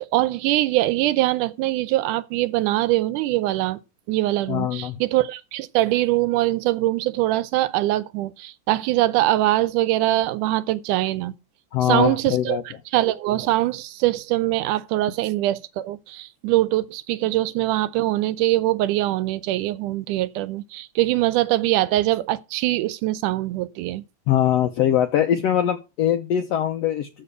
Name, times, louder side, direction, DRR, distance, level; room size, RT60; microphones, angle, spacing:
voice 1, 0.0-3.8 4.1-11.3 11.8-12.6 12.9-24.0, right 16 dB, 80° right, 2.1 m, -23 dB
voice 2, 4.5-5.0 11.7-12.6 24.3-27.1, left 10 dB, 70° left, 1.5 m, -22 dB
7.2 x 6.8 x 8.1 m
omnidirectional pair, 3.7 m